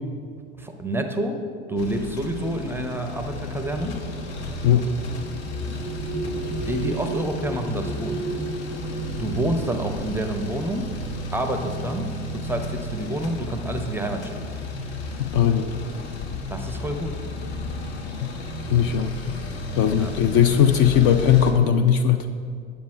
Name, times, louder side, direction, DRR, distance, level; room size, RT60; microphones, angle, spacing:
voice 1, 0.6-1.4 1.7-4.0 6.2-6.3 6.7-8.2 9.2-10.9 11.3-14.4 16.5-17.2 19.8-20.1, right 1 dB, 5° right, 5 dB, 0.6 m, -28 dB
sound 1, 1.8-21.5, left 2 dB, 60° left, 1.2 m, -33 dB
sound 2, 2.7-11.6 12.5-12.6 13.0-13.6, right 2 dB, 15° left, 1.6 m, -35 dB
voice 2, 15.2-15.7 18.7-19.1 19.8-22.3, left 9 dB, 35° left, 8 dB, 0.5 m, -18 dB
9.5 x 7.0 x 4.4 m, 2.2 s
figure-of-eight pair, 80°, 37 cm